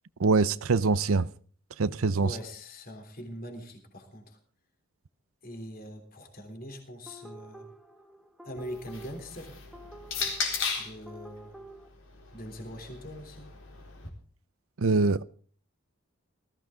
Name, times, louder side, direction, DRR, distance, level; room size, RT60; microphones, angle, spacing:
voice 1, 0.2-1.3 1.8-2.4 14.8-15.2, right 4 dB, 75° right, 0.6 m, -24 dB
voice 2, 2.2-4.4 5.4-7.7 8.4-9.6 10.8-11.6 12.3-13.5, equal, 40° left, 3.3 m, -42 dB
sound 1, 7.1-11.9, right 1 dB, ahead, 1.0 m, -50 dB
sound 2, 8.6-11.0 12.0-14.1, left 5 dB, 65° left, 4.1 m, -36 dB
19.0 x 15.0 x 3.7 m
head